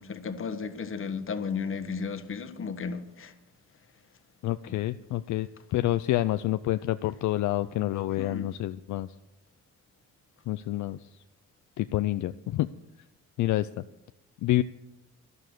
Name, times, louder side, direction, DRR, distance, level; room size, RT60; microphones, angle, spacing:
voice 1, 0.0-3.3 4.7-4.8 8.2-8.5, left 5 dB, 45° left, 1.4 m, -34 dB
voice 2, 4.4-9.1 10.5-11.1 11.8-12.7 13.4-13.7 14.4-14.6, left 15 dB, 75° left, 0.5 m, -28 dB
12.5 x 11.0 x 6.7 m
cardioid pair, 90°, 30 cm